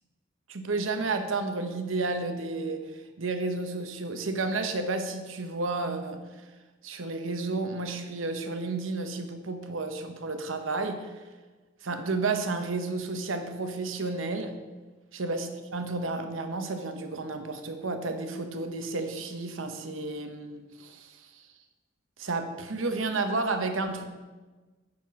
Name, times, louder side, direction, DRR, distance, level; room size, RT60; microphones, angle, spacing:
voice 1, 0.5-6.2 6.8-11.1 11.8-14.5 15.1-21.4 22.2-24.0, right 3 dB, 90° right, 7 dB, 0.9 m, -31 dB
9.6 x 4.4 x 6.3 m, 1.3 s
head